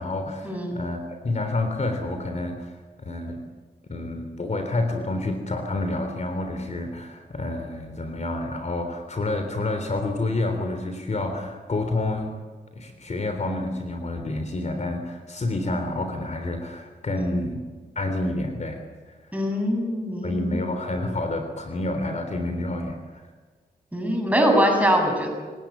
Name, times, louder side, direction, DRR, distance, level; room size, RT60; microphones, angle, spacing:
voice 1, 0.0-2.7 3.0-3.4 3.9-12.3 12.8-17.7 18.0-18.8 20.2-23.2, left 2 dB, 45° left, 5 dB, 3.5 m, -28 dB
voice 2, 19.3-20.6 23.9-25.3, equal, 10° right, 2 dB, 7.9 m, -23 dB
29.5 x 18.0 x 8.8 m, 1.4 s
wide cardioid pair, 100°, 17 cm